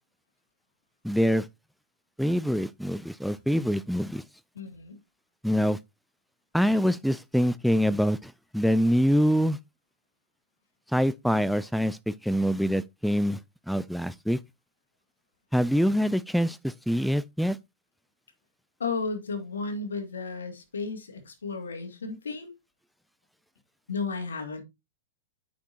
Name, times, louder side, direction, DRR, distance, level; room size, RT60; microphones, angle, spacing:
voice 1, 1.0-1.4 2.2-4.2 5.4-5.8 6.5-9.6 10.9-13.4 13.7-14.4 15.5-17.6, equal, ahead, 0.4 m, -25 dB
voice 2, 4.6-5.0 18.8-22.5 23.9-24.6, left 4 dB, 85° left, 2.2 m, -33 dB
8.3 x 6.1 x 2.8 m
hypercardioid pair, 115°, 0 cm